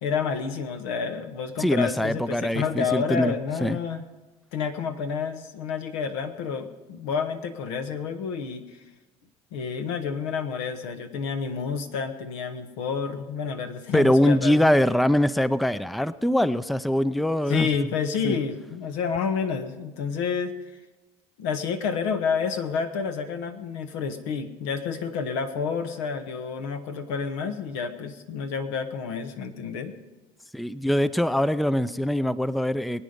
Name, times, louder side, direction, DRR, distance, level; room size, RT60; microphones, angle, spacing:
voice 1, 0.0-4.0 4.5-8.8 9.5-14.8 17.5-20.6 21.4-29.9, left 6 dB, 85° left, 6 dB, 1.4 m, -29 dB
voice 2, 1.6-3.3 3.6-3.8 13.9-17.7 18.2-18.4 30.5-33.0, equal, ahead, 15 dB, 0.5 m, -23 dB
21.5 x 9.2 x 5.3 m, 1.1 s
supercardioid pair, 85°, 15 cm